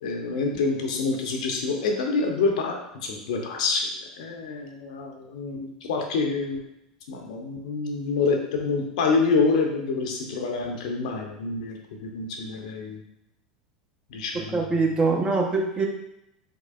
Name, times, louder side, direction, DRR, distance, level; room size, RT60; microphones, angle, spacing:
voice 1, 0.0-3.9 4.2-6.6 7.1-13.0 14.1-14.6, left 4 dB, 65° left, 2 dB, 0.8 m, -27 dB
voice 2, 14.3-15.9, right 3 dB, 20° right, 1 dB, 0.8 m, -23 dB
4.6 x 3.7 x 2.4 m, 0.81 s
figure-of-eight pair, 85°, 4 cm